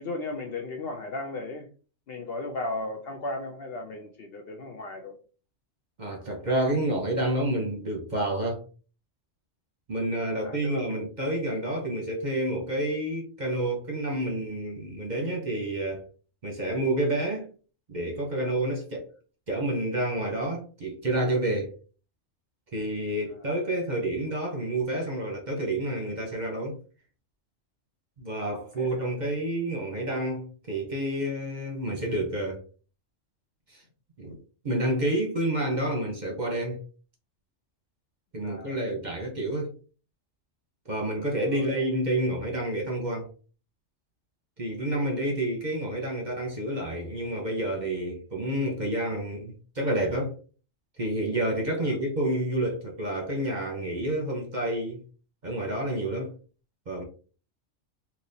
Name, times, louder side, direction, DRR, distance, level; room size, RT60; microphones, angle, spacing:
voice 1, 0.0-1.7 2.1-5.2 10.3-11.0 23.3-23.5 28.5-29.1 38.4-38.9 41.4-41.9 51.8-52.0, left 2 dB, 60° left, 0.7 m, -36 dB
voice 2, 6.0-8.6 9.9-16.0 16.4-17.5 17.9-19.1 19.5-21.7 22.7-26.8 28.2-32.6 34.2-34.4 34.6-36.8 38.3-39.7 40.9-43.3 44.6-50.4 51.0-55.0 55.4-56.3 56.9-57.0, right 1 dB, 40° right, 0.8 m, -29 dB
3.9 x 2.8 x 2.6 m
omnidirectional pair, 1.3 m